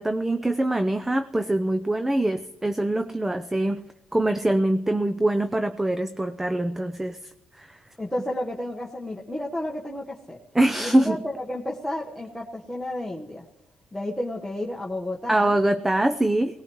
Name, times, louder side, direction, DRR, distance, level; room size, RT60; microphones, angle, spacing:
voice 1, 0.0-3.8 4.1-7.2 7.6-7.8 10.5-11.2 15.3-16.5, right 1 dB, 10° right, 10 dB, 0.6 m, -23 dB
voice 2, 8.0-10.4 10.8-13.5 13.9-15.6, left 1 dB, 5° left, -3 dB, 1.3 m, -32 dB
18.5 x 18.5 x 3.1 m, 0.98 s
cardioid pair, 90°, 3 cm